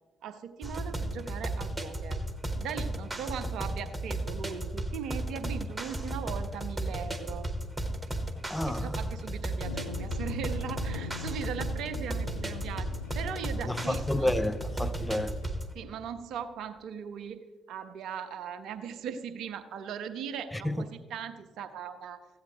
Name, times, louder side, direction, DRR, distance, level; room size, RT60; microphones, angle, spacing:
voice 1, 0.2-2.2 2.6-7.5 8.7-14.3 15.7-22.2, right 7 dB, 60° right, 0.6 m, -39 dB
sound 1, 0.6-15.7, right 1 dB, 15° right, 1.1 m, -35 dB
voice 2, 8.5-8.9 13.7-15.4 20.6-20.8, left 1 dB, 10° left, 0.5 m, -30 dB
Thunder, 9.6-15.5, left 5 dB, 80° left, 0.3 m, -42 dB
14.5 x 8.4 x 3.0 m
figure-of-eight pair, 40°, 0 cm